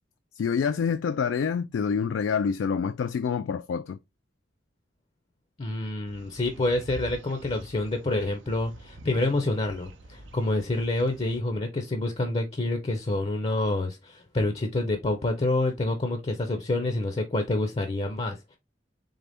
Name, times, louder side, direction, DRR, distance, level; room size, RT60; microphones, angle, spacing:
voice 1, 0.4-4.0, left 6 dB, 80° left, 0.3 m, -27 dB
voice 2, 5.6-18.6, left 2 dB, 35° left, 0.6 m, -27 dB
sound 1, 6.1-11.4, right 2 dB, 80° right, 0.6 m, -46 dB
3.9 x 3.3 x 3.4 m
head